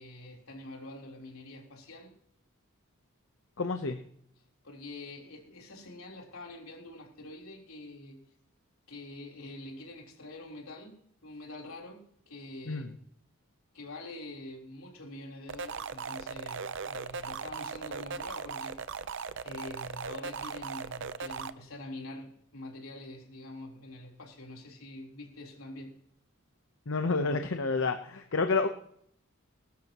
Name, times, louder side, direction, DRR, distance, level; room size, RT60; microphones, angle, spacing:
voice 1, 0.0-2.1 4.6-8.2 8.9-12.9 13.7-18.8 19.4-25.9, left 2 dB, 85° left, 0 dB, 3.8 m, -45 dB
voice 2, 3.6-4.0 12.7-12.9 26.9-28.7, left 3 dB, 65° left, 6 dB, 0.9 m, -29 dB
sound 1, 15.5-21.5, right 5 dB, 60° right, 0.7 m, -38 dB
20.0 x 12.5 x 3.0 m, 0.67 s
head